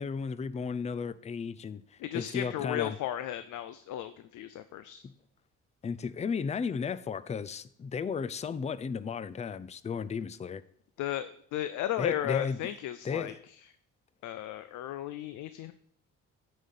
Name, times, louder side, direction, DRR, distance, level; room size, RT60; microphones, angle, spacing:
voice 1, 0.0-3.0 5.0-5.1 5.8-10.6 12.0-12.6 13.0-13.3, left 6 dB, 20° left, 15 dB, 0.4 m, -34 dB
voice 2, 2.0-5.0 11.0-13.3 14.2-15.7, left 12 dB, 75° left, 12 dB, 0.5 m, -35 dB
9.0 x 4.1 x 6.5 m, 0.65 s
cardioid pair, 90°, 30 cm